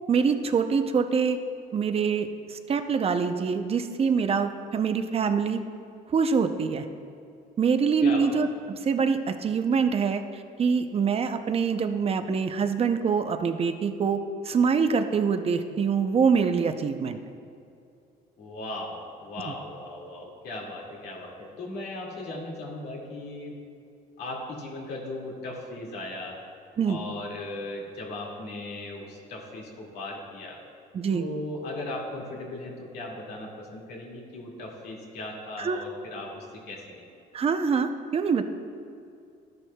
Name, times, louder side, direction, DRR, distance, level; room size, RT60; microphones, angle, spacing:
voice 1, 0.1-1.4 1.7-5.6 6.1-6.9 7.6-8.5 8.8-10.2 10.6-17.2 26.8-27.0 30.9-31.2 35.6-35.8 37.3-38.4, right 5 dB, 35° right, 8 dB, 0.6 m, -25 dB
voice 2, 8.0-8.3 18.4-23.6 24.2-26.4 26.9-30.6 31.1-37.0, left 2 dB, 75° left, -2 dB, 2.2 m, -37 dB
13.0 x 10.5 x 2.3 m, 2.5 s
cardioid pair, 110°, 17 cm